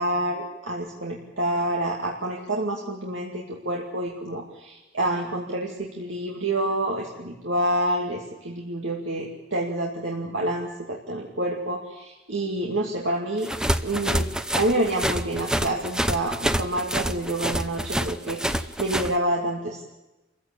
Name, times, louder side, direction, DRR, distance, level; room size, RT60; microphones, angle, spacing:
voice 1, 0.0-13.5 13.8-19.9, right 1 dB, 80° right, -1 dB, 2.6 m, -28 dB
sound 1, 13.4-19.1, equal, 5° right, 0.8 m, -27 dB
27.0 x 15.5 x 8.6 m, 1.0 s
head